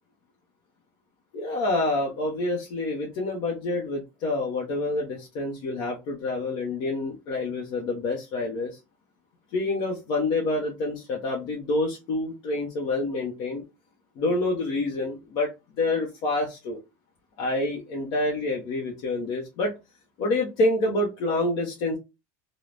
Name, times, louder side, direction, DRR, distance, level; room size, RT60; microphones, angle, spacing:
voice 1, 1.3-8.8 9.5-13.6 14.2-15.5 15.8-16.8 17.4-19.7 20.2-22.0, left 2 dB, 40° left, -1 dB, 0.6 m, -27 dB
3.2 x 2.0 x 2.4 m, 0.25 s
supercardioid pair, 175°, 9 cm